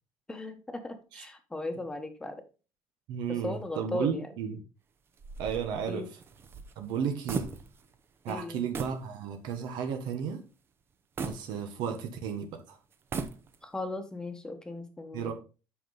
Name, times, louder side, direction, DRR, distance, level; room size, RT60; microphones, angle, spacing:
voice 1, 0.3-2.4 3.3-4.3 5.9-6.1 8.3-8.6 13.6-15.3, left 2 dB, 10° left, 1.2 m, -37 dB
voice 2, 3.1-4.6 5.4-6.1 6.8-7.5 8.2-10.4 11.2-12.8 15.1-15.3, right 7 dB, 70° right, 1.3 m, -33 dB
sound 1, 5.2-8.0 8.3-8.4 8.7-9.1 9.5-9.6 11.2-12.2 12.9-13.8, right 4 dB, 30° right, 0.8 m, -38 dB
8.3 x 6.0 x 4.0 m
cardioid pair, 165°, 8 cm